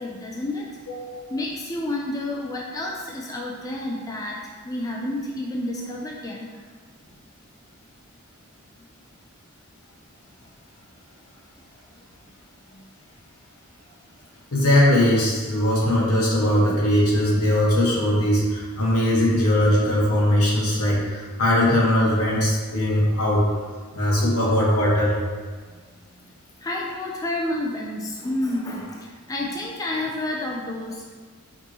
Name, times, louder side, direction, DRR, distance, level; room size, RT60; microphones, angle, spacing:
voice 1, 0.0-0.7 1.3-4.4 4.6-6.5 26.1-26.2 26.6-31.1, left 1 dB, 15° left, -2 dB, 0.3 m, -30 dB
voice 2, 0.9-1.2 14.5-23.4 23.9-25.2, left 1 dB, 80° left, -5 dB, 1.3 m, -20 dB
5.2 x 3.0 x 2.9 m, 1.5 s
head